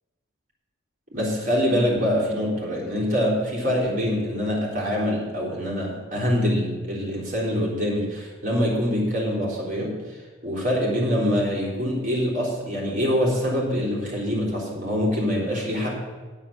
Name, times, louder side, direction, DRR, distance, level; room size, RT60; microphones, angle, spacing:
voice 1, 1.1-15.9, equal, 40° right, -3 dB, 3.5 m, -25 dB
9.0 x 8.3 x 7.1 m, 1.4 s
head